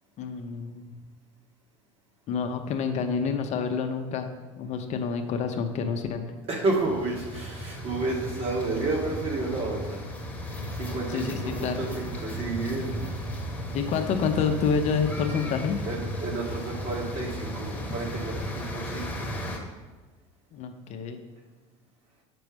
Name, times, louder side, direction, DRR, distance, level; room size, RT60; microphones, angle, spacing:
voice 1, 0.2-0.9 2.3-4.3 4.6-6.2 11.1-11.9 13.7-15.8 20.5-21.2, left 6 dB, 50° left, 5 dB, 0.7 m, -28 dB
voice 2, 6.5-10.0 10.7-12.9 15.8-19.3, right 3 dB, 40° right, -2 dB, 2.0 m, -31 dB
sound 1, 6.8-19.6, equal, 10° left, 1.3 m, -35 dB
7.7 x 6.0 x 3.5 m, 1.3 s
supercardioid pair, 105°, 15 cm